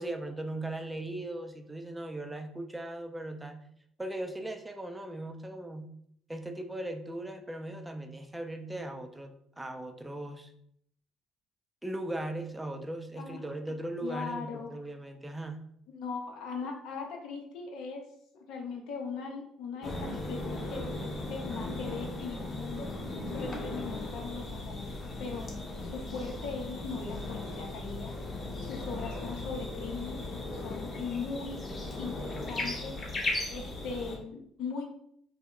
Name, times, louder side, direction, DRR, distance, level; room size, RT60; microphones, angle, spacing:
voice 1, 0.0-3.6 4.0-5.9 6.3-10.5 11.8-15.6, right 1 dB, 10° right, 5 dB, 0.4 m, -38 dB
voice 2, 14.0-14.7 15.9-18.0 18.3-22.9 23.3-24.9 25.2-28.1 28.6-30.2 30.5-31.6 32.0-33.0 33.5-34.8, left 5 dB, 70° left, 1 dB, 0.6 m, -39 dB
sound 1, 19.8-34.2, left 2 dB, 40° left, 0.7 m, -37 dB
2.1 x 2.1 x 3.7 m, 0.67 s
hypercardioid pair, 65°, 0 cm